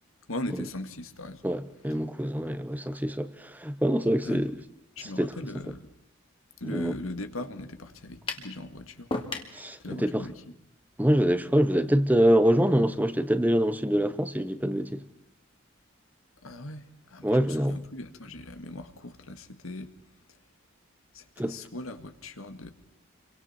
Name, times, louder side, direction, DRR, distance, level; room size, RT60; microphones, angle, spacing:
voice 1, 0.3-1.4 4.2-4.5 5.0-5.9 6.6-9.1 9.8-10.4 16.4-19.9 21.1-22.7, left 1 dB, 85° left, 2.0 m, -39 dB
voice 2, 1.4-4.5 5.0-5.3 6.6-6.9 9.5-10.2 11.0-15.0 17.2-17.8 21.4-21.6, equal, 10° right, 1.0 m, -25 dB
sound 1, 8.3-8.5 9.1-9.6, left 2 dB, 25° left, 2.4 m, -32 dB
29.0 x 24.0 x 4.4 m
head